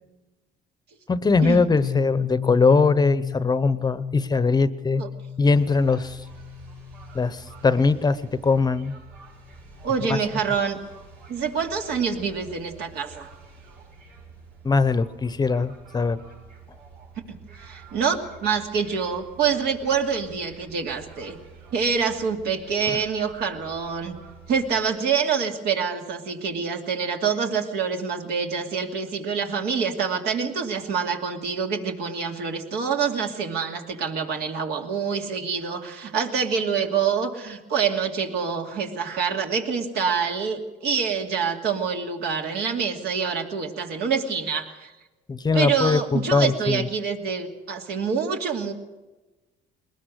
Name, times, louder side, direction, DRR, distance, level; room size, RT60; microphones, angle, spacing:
voice 1, 1.1-5.0 5.4-6.2 7.1-8.9 10.1-10.2 14.6-16.2 22.9-23.0 45.3-46.9, left 4 dB, 25° left, 14 dB, 0.8 m, -21 dB
Piano, 1.8-9.3, left 9 dB, 60° left, 0.8 m, -34 dB
sound 1, 5.5-24.8, right 4 dB, 90° right, 6.1 m, -48 dB
voice 2, 9.8-10.8 11.3-13.3 17.3-21.4 21.7-24.2 24.5-44.9 45.5-48.7, right 6 dB, 75° right, 2 dB, 2.6 m, -26 dB
21.5 x 19.5 x 6.4 m, 1.1 s
cardioid pair, 110°, 17 cm